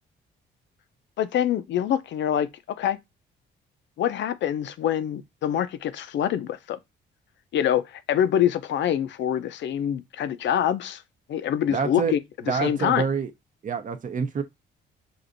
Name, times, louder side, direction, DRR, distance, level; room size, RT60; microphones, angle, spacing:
voice 1, 1.2-3.0 4.0-6.8 7.5-11.0 11.3-12.2 12.5-13.0, left 10 dB, 65° left, 0.5 m, -25 dB
voice 2, 11.7-12.1 12.5-13.3 13.6-14.4, right 5 dB, 40° right, 0.7 m, -27 dB
6.0 x 2.6 x 2.5 m
cardioid pair, 90°, 20 cm